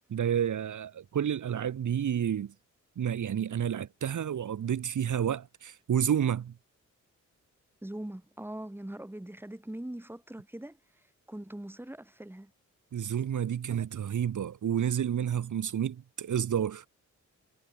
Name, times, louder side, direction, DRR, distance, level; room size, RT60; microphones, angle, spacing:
voice 1, 0.1-2.5 3.0-6.5 12.9-16.9, right 9 dB, 75° right, 2.2 m, -30 dB
voice 2, 7.8-10.8 11.3-12.5, right 1 dB, 5° right, 4.6 m, -41 dB
wide cardioid pair, 105°, 30 cm